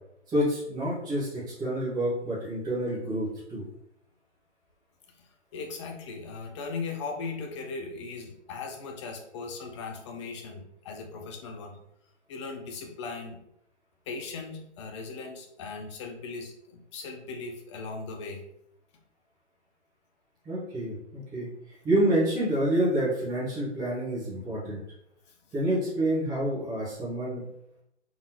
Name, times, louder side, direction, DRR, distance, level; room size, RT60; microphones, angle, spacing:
voice 1, 0.3-3.6 20.4-20.9 21.3-21.5 21.8-24.8 25.5-27.4, right 1 dB, 10° right, -9 dB, 1.6 m, -28 dB
voice 2, 5.2-11.8 12.3-13.4 14.1-18.4, left 4 dB, 25° left, 2 dB, 0.6 m, -38 dB
4.0 x 3.5 x 3.1 m, 0.77 s
figure-of-eight pair, 135°, 36 cm